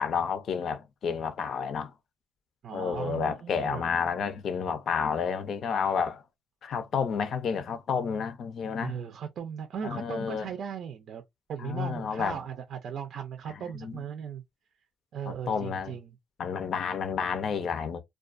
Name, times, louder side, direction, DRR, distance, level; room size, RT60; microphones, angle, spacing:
voice 1, 0.0-1.9 2.7-6.2 6.6-9.0 9.8-10.5 11.6-12.4 13.5-14.0 15.3-16.0 16.4-18.0, left 6 dB, 65° left, 0.5 m, -30 dB
voice 2, 2.6-3.9 8.8-11.2 11.5-14.4 15.1-16.2, right 8 dB, 65° right, 0.4 m, -37 dB
2.3 x 2.3 x 2.5 m
cardioid pair, 90°, 0 cm